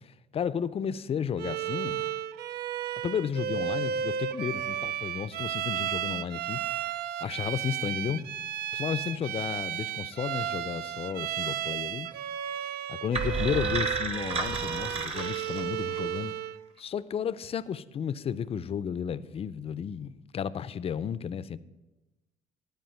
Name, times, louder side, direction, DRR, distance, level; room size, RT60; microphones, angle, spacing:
voice 1, 0.3-2.0 3.0-8.3 8.7-12.1 12.9-16.3 16.8-21.6, left 8 dB, 35° left, 0.4 m, -33 dB
Bowed string instrument, 1.4-16.6, right 10 dB, 70° right, 0.4 m, -33 dB
sound 1, 13.1-16.2, right 3 dB, 35° right, 1.2 m, -32 dB
12.5 x 5.0 x 7.7 m
cardioid pair, 110°, 17 cm